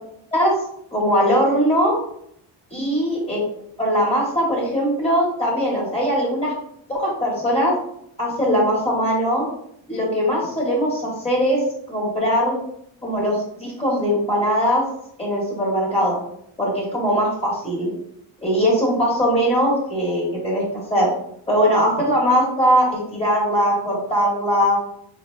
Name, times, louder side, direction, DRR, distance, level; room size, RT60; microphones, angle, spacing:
voice 1, 0.9-2.0 2.7-3.4 3.8-6.5 6.9-7.7 8.2-9.5 9.9-11.6 11.9-12.5 13.0-14.8 15.2-16.2 16.6-17.9 18.4-20.6 20.9-21.1 21.5-24.8, equal, 10° left, -4 dB, 1.3 m, -20 dB
4.6 x 2.2 x 3.1 m, 0.72 s
cardioid pair, 150°, 48 cm